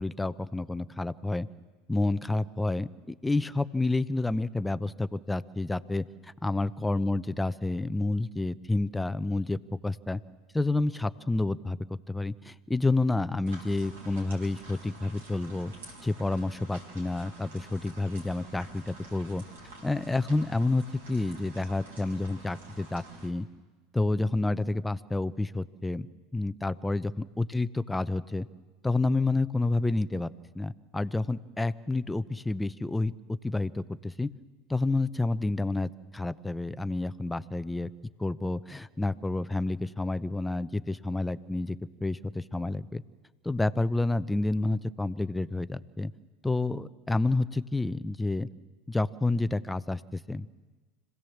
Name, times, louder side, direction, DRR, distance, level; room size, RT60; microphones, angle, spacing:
voice 1, 0.0-1.5 1.9-9.6 9.8-10.2 10.5-11.8 12.1-15.7 16.0-19.4 19.8-23.5 23.9-28.5 28.8-30.3 30.5-34.3 34.7-37.9 38.2-41.8 42.0-43.0 43.4-46.1 46.4-48.5 48.9-50.5, left 2 dB, 10° left, 14 dB, 0.7 m, -29 dB
sound 1, 13.5-23.3, right 1 dB, 85° right, 4.7 m, -48 dB
25.5 x 16.5 x 7.2 m, 1.3 s
hypercardioid pair, 85°, 0 cm